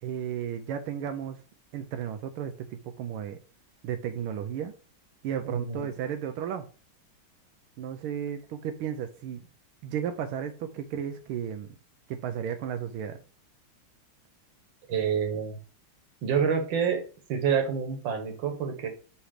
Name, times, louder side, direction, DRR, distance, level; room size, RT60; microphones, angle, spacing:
voice 1, 0.0-1.4 1.7-3.4 3.8-4.7 5.2-6.6 7.8-9.4 9.8-11.8 12.1-13.2, right 9 dB, 90° right, 7 dB, 1.5 m, -34 dB
voice 2, 5.5-5.8 14.9-15.6 16.2-17.0 17.3-18.9, right 7 dB, 65° right, 5 dB, 1.9 m, -27 dB
7.5 x 3.3 x 4.9 m, 0.36 s
omnidirectional pair, 2.3 m